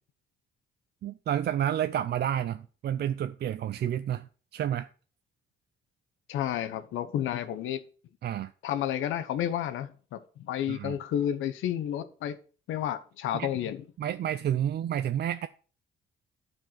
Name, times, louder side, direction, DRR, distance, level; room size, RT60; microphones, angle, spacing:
voice 1, 1.0-4.9 8.2-8.5 10.7-11.0 13.3-13.5 14.0-15.5, right 10 dB, 55° right, 0.5 m, -30 dB
voice 2, 6.3-7.8 8.6-12.4 12.7-13.8, left 10 dB, 85° left, 1.0 m, -31 dB
11.5 x 4.7 x 5.9 m
cardioid pair, 90°, 20 cm